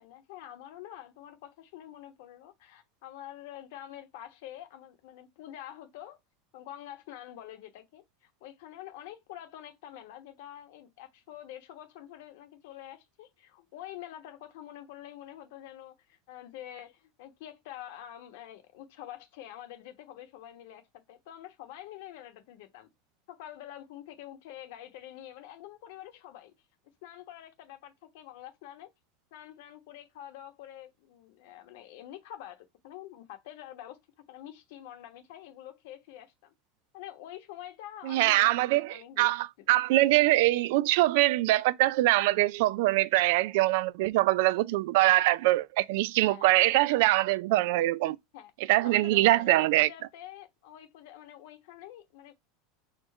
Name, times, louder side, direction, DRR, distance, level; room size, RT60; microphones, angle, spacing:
voice 1, 0.0-6.2 6.5-22.9 23.3-26.5 27.0-28.9 29.3-34.0 34.3-36.5 36.9-38.5 38.7-39.3 39.7-39.8 46.3-46.5 48.3-48.5 48.8-52.3, left 12 dB, 70° left, 1.1 m, -47 dB
voice 2, 38.0-48.2 48.7-49.9, right 17 dB, 70° right, 0.3 m, -23 dB
4.4 x 2.3 x 4.2 m
supercardioid pair, 130°, 0 cm